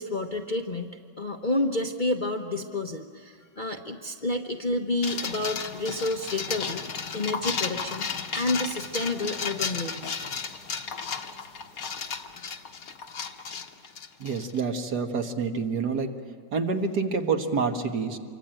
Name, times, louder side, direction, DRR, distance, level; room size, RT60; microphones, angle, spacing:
voice 1, 0.0-6.8 7.1-8.1 8.3-10.1, left 2 dB, 35° left, 3 dB, 0.9 m, -29 dB
sound 1, 5.0-14.6, left 6 dB, 55° left, 1.5 m, -34 dB
voice 2, 14.2-16.1 16.5-18.2, right 5 dB, 60° right, 5 dB, 2.0 m, -27 dB
26.5 x 24.5 x 9.0 m, 2.2 s
omnidirectional pair, 2.0 m